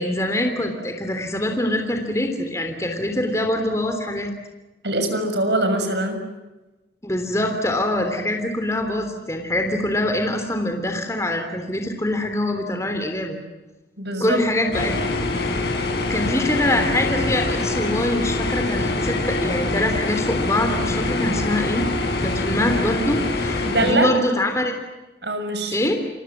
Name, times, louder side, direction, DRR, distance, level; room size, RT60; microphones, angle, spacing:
voice 1, 0.0-4.3 7.0-13.4 14.2-15.0 16.1-21.9 22.2-24.7 25.7-26.0, left 1 dB, 15° left, 4 dB, 3.4 m, -24 dB
voice 2, 4.8-6.2 14.0-14.4 23.6-24.1 25.2-25.9, right 1 dB, 75° right, 6 dB, 6.6 m, -23 dB
sound 1, 14.7-23.9, left 2 dB, 65° left, 7.8 m, -24 dB
29.5 x 24.5 x 7.5 m, 1.1 s
head